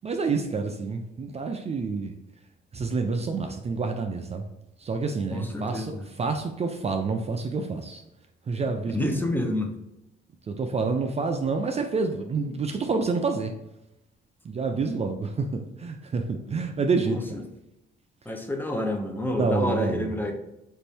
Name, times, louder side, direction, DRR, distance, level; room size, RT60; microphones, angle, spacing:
voice 1, 0.0-2.1 2.7-4.4 4.8-8.0 8.5-9.3 10.5-13.5 14.4-17.4 19.4-20.1, right 4 dB, 30° right, 4 dB, 0.4 m, -28 dB
voice 2, 5.3-6.0 8.9-9.7 17.1-17.4 18.3-20.3, left 1 dB, 10° left, 3 dB, 0.6 m, -28 dB
4.2 x 2.6 x 3.3 m, 0.87 s
cardioid pair, 90°, 20 cm